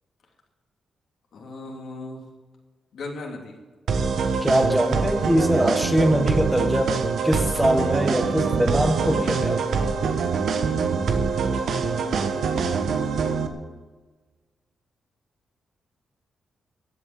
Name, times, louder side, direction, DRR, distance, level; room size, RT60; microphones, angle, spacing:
voice 1, 1.3-2.2 2.9-3.6 11.7-12.5, left 2 dB, 70° left, 0 dB, 3.1 m, -38 dB
sound 1, 3.9-13.5, right 5 dB, 75° right, 1.3 m, -24 dB
voice 2, 4.4-9.6, equal, 5° right, 5 dB, 1.6 m, -22 dB
15.0 x 8.4 x 7.3 m, 1.3 s
cardioid pair, 65°, 0 cm